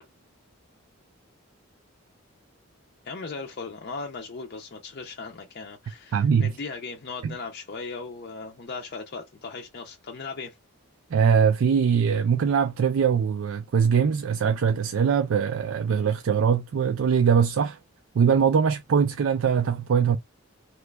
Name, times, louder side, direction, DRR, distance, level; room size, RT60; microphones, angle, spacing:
voice 1, 3.0-10.5, left 4 dB, 45° left, 0.5 m, -37 dB
voice 2, 6.1-6.5 7.2-7.3 11.1-17.8 18.1-20.2, right 7 dB, 65° right, 0.3 m, -22 dB
3.0 x 2.3 x 3.2 m
head